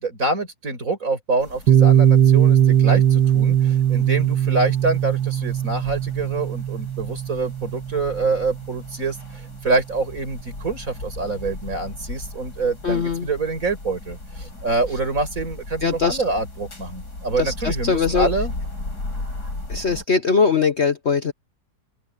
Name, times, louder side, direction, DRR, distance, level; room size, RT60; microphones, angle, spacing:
voice 1, 0.0-18.5, right 3 dB, 45° right, 5.8 m, -26 dB
sound 1, 1.4-20.0, left 2 dB, 65° left, 6.6 m, -36 dB
Piano, 1.7-9.1, right 10 dB, 75° right, 2.7 m, -19 dB
voice 2, 12.8-13.3 15.8-16.2 17.4-18.3 19.7-21.3, left 5 dB, 45° left, 1.1 m, -21 dB
open air
omnidirectional pair, 1.9 m